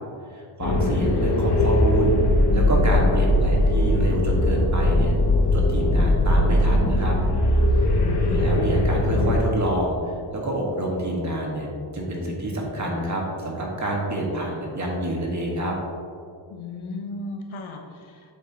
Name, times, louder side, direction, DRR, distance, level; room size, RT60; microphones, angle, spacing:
voice 1, 0.3-2.1 2.5-5.1 5.5-7.2 8.2-11.7 11.9-15.8, right 1 dB, 35° right, -1 dB, 1.6 m, -27 dB
sound 1, 0.6-9.4, left 1 dB, 55° left, 1.1 m, -20 dB
voice 2, 7.9-8.6 16.5-18.3, left 3 dB, 70° left, 2 dB, 1.2 m, -36 dB
7.9 x 7.2 x 2.9 m, 2.2 s
cardioid pair, 90°, 49 cm